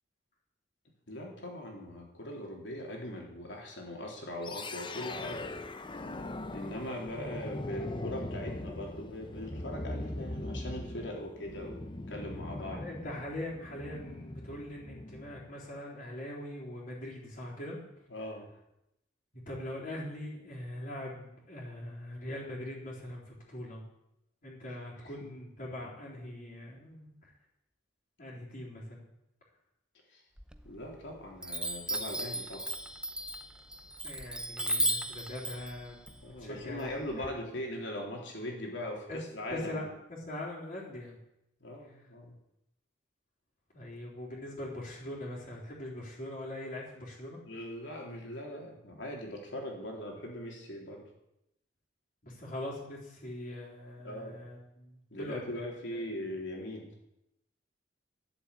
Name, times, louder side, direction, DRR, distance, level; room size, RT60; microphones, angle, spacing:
voice 1, 1.1-5.5 6.5-12.9 18.1-18.5 25.0-25.1 30.1-30.2 30.6-32.7 36.2-39.9 41.6-42.4 47.5-51.1 54.0-54.4 55.1-56.9, left 1 dB, 75° left, 0 dB, 3.6 m, -40 dB
sound 1, 4.4-15.5, left 1 dB, 25° left, 0.8 m, -41 dB
voice 2, 12.6-17.8 19.5-23.8 24.4-27.1 28.2-29.1 34.0-37.3 39.1-39.2 39.5-39.8 40.1-41.2 43.7-47.4 52.2-56.2, left 1 dB, 45° left, -6 dB, 3.9 m, -42 dB
Chime, 30.4-31.0 31.4-37.3, right 1 dB, 5° right, 0.7 m, -35 dB
12.0 x 7.9 x 8.4 m, 0.84 s
head